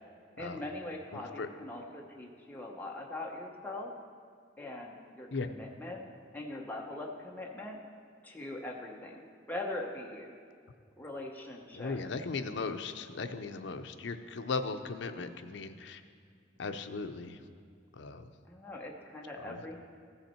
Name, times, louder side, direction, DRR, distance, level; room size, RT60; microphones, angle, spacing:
voice 1, 0.4-3.9 4.6-6.0 6.3-7.8 8.2-9.2 9.5-10.3 11.0-12.0 18.5-19.8, left 2 dB, 10° left, -1 dB, 0.8 m, -41 dB
voice 2, 1.1-1.5 5.3-5.5 11.7-16.0 16.6-17.4 18.0-18.2 19.4-19.6, left 4 dB, 70° left, 8 dB, 0.5 m, -37 dB
14.5 x 5.7 x 4.4 m, 2.2 s
head